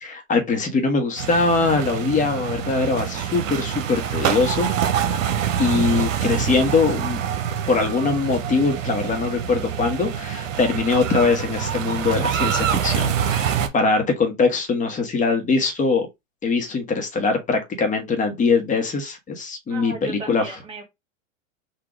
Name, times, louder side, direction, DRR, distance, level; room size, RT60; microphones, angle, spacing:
voice 1, 0.0-4.7 5.6-7.2 7.7-16.1 16.4-20.4, left 4 dB, 20° left, 1.2 m, -22 dB
sound 1, 1.2-13.7, right 8 dB, 85° right, 0.9 m, -25 dB
voice 2, 19.7-20.8, right 3 dB, 15° right, 1.5 m, -36 dB
4.0 x 2.6 x 4.6 m
hypercardioid pair, 125°, 38 cm